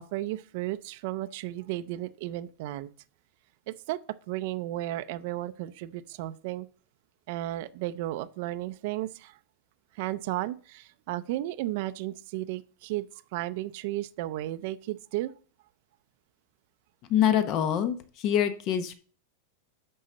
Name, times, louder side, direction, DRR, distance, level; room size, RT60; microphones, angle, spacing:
voice 1, 0.0-2.9 3.7-4.0 4.3-6.7 7.3-9.4 9.9-13.1 13.3-15.3, right 15 dB, 45° right, 0.5 m, -34 dB
voice 2, 17.1-18.9, left 9 dB, 30° left, 0.8 m, -25 dB
11.0 x 4.0 x 6.6 m
supercardioid pair, 175°, 0 cm